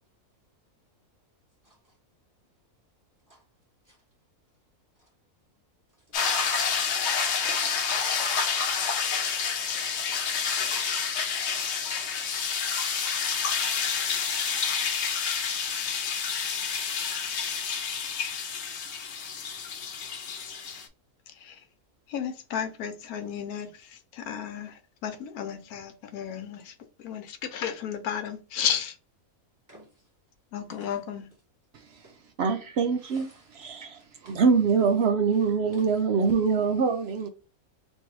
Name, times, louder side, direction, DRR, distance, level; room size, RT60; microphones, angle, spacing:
sound 1, 6.1-20.9, left 6 dB, 60° left, 0.9 m, -29 dB
voice 1, 6.1-6.6 7.4-8.1 9.7-10.0 29.7-29.9 30.7-30.9 33.1-33.2 34.2-34.4, right 1 dB, 15° right, 1.1 m, -51 dB
voice 2, 21.3-21.6 22.1-29.0 30.5-31.3, left 8 dB, 85° left, 1.2 m, -33 dB
voice 3, 32.4-37.3, right 5 dB, 60° right, 0.7 m, -24 dB
3.2 x 2.6 x 4.4 m
omnidirectional pair, 1.5 m